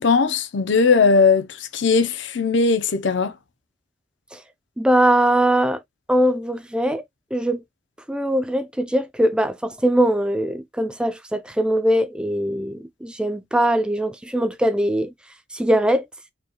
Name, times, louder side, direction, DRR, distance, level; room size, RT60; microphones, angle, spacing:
voice 1, 0.0-3.3, left 4 dB, 65° left, 0.6 m, -18 dB
voice 2, 4.8-5.8 6.1-7.0 7.3-7.6 8.1-15.1 15.5-16.0, right 1 dB, 5° right, 0.3 m, -21 dB
5.2 x 2.3 x 2.9 m
head